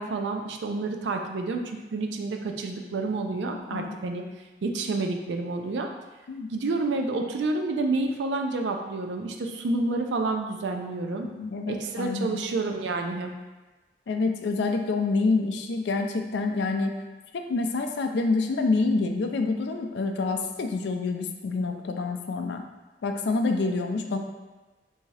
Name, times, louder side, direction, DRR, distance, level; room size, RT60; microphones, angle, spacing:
voice 1, 0.0-4.2 4.6-5.9 6.5-11.3 11.7-13.3, right 3 dB, 85° right, 4 dB, 0.4 m, -29 dB
voice 2, 11.2-12.4 14.1-17.0 17.3-22.6 23.0-24.2, left 3 dB, 75° left, 5 dB, 0.4 m, -27 dB
3.5 x 2.7 x 3.2 m, 1.2 s
head